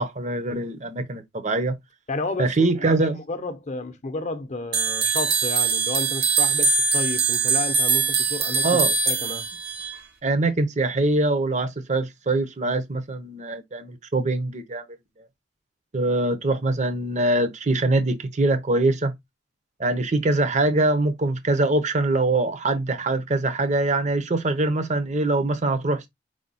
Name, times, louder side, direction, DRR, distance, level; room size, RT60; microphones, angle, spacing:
voice 1, 0.0-1.7 2.4-3.2 8.6-8.9 10.2-14.8 15.9-19.1 19.8-26.1, right 2 dB, 40° right, 0.7 m, -23 dB
voice 2, 2.1-2.9 3.1-8.8 9.1-9.5, left 3 dB, 40° left, 0.6 m, -31 dB
sound 1, 4.7-10.0, right 5 dB, 60° right, 1.0 m, -22 dB
4.9 x 2.2 x 4.0 m
head